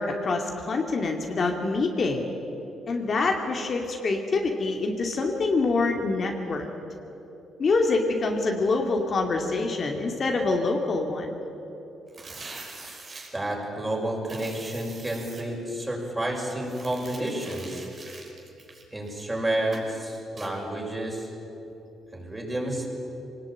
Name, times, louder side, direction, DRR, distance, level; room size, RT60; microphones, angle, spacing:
voice 1, 0.0-2.3 2.9-6.6 7.6-11.3, left 3 dB, 45° left, 2 dB, 2.4 m, -25 dB
sound 1, 12.1-13.3 14.2-15.4 16.6-19.3 19.7-19.9 20.4-20.5, right 3 dB, 40° right, 5.1 m, -43 dB
voice 2, 13.3-17.9 18.9-21.3 22.1-22.9, right 1 dB, 15° right, -1 dB, 6.2 m, -30 dB
23.5 x 19.0 x 9.0 m, 3.0 s
cardioid pair, 90°, 0 cm